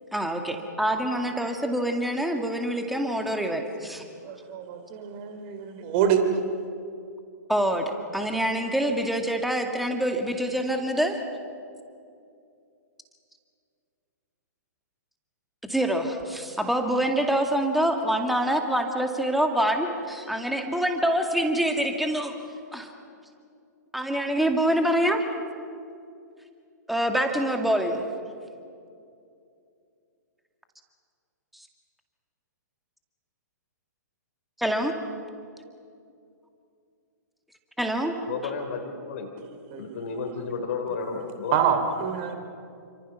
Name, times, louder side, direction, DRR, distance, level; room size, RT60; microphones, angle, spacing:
voice 1, 0.1-4.0 7.5-7.8 8.1-11.2 15.7-22.3 22.7-22.9 23.9-25.2 26.9-28.0 34.6-34.9 37.8-38.1, right 1 dB, ahead, 4 dB, 2.2 m, -25 dB
voice 2, 4.2-6.2 39.7-39.8 41.5-42.3, right 8 dB, 35° right, 7 dB, 3.0 m, -26 dB
voice 3, 38.3-39.3 39.8-41.6, left 5 dB, 45° left, 3 dB, 3.3 m, -32 dB
28.5 x 25.5 x 5.9 m, 2.5 s
figure-of-eight pair, 115°, 10 cm